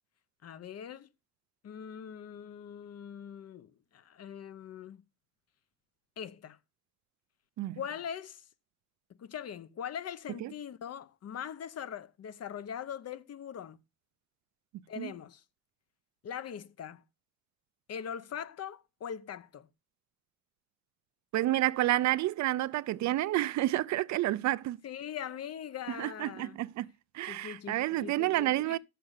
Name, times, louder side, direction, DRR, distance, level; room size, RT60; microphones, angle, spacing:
voice 1, 0.4-1.1 1.6-5.0 6.2-6.6 7.8-8.4 9.2-13.8 14.9-15.4 16.2-17.0 17.9-19.7 24.8-26.6 27.2-28.8, left 8 dB, 60° left, 0.9 m, -41 dB
voice 2, 21.3-24.8 25.9-26.9 27.1-28.8, right 15 dB, 70° right, 0.5 m, -29 dB
7.5 x 6.8 x 6.4 m
cardioid pair, 85°, 29 cm